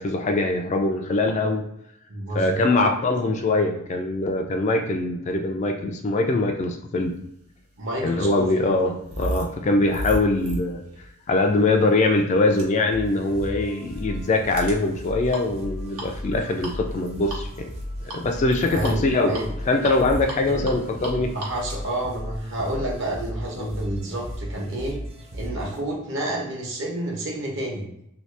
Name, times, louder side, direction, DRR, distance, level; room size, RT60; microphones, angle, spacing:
voice 1, 0.0-1.7 2.3-7.1 8.0-10.8 11.3-17.7 18.1-19.3 19.7-21.3 23.6-23.7, left 2 dB, 35° left, 4 dB, 0.3 m, -22 dB
voice 2, 2.1-2.9 7.8-8.7 18.7-19.5 20.4-20.8 21.1-25.0 25.3-27.9, right 1 dB, 60° right, -1 dB, 1.0 m, -30 dB
sound 1, 7.4-23.1, right 1 dB, 90° right, 1.0 m, -37 dB
sound 2, 12.9-25.8, equal, 30° right, 0.5 m, -36 dB
2.8 x 2.7 x 3.2 m, 0.77 s
head